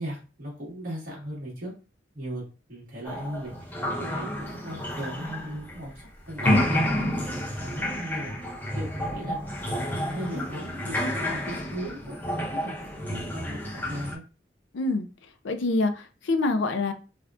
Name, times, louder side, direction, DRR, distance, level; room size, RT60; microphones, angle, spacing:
voice 1, 0.0-1.7 2.1-7.2 7.6-14.2, equal, 50° right, -4 dB, 1.5 m, -38 dB
sound 1, 3.0-6.0 6.3-14.1, equal, 10° left, 0.5 m, -30 dB
voice 2, 14.7-15.1 15.4-16.9, left 2 dB, 75° left, 8 dB, 0.4 m, -25 dB
3.4 x 2.3 x 2.4 m, 0.33 s
head